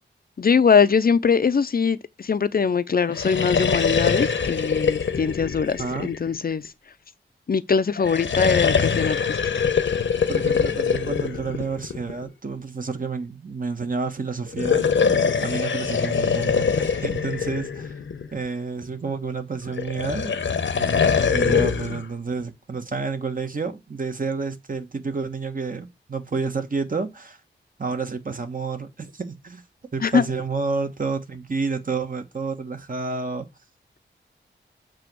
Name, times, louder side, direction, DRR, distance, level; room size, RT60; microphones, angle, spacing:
voice 1, 0.4-6.7 7.5-9.6 30.0-30.2, left 6 dB, 50° left, 0.6 m, -22 dB
sound 1, 3.0-6.7 8.0-12.3 14.5-18.5 19.8-22.0, left 6 dB, 80° left, 1.1 m, -23 dB
voice 2, 10.3-14.8 15.4-17.9 18.3-20.4 20.8-27.4 27.8-29.6 29.9-33.5, right 4 dB, 45° right, 1.3 m, -30 dB
7.6 x 3.0 x 6.1 m
wide cardioid pair, 80°, 19 cm